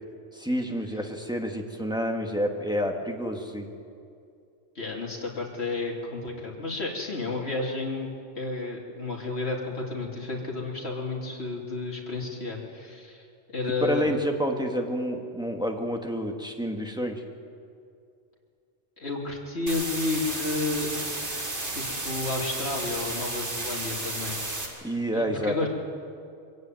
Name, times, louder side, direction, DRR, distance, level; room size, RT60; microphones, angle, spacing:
voice 1, 0.3-3.7 13.8-17.2 24.8-25.7, equal, 5° right, 2 dB, 2.0 m, -29 dB
voice 2, 4.8-8.1 8.4-14.1 19.0-20.9 21.7-24.4 25.1-25.7, left 3 dB, 60° left, -2 dB, 3.5 m, -31 dB
sound 1, 19.7-24.7, right 2 dB, 70° right, 3.4 m, -33 dB
23.5 x 15.5 x 9.3 m, 2.4 s
omnidirectional pair, 1.2 m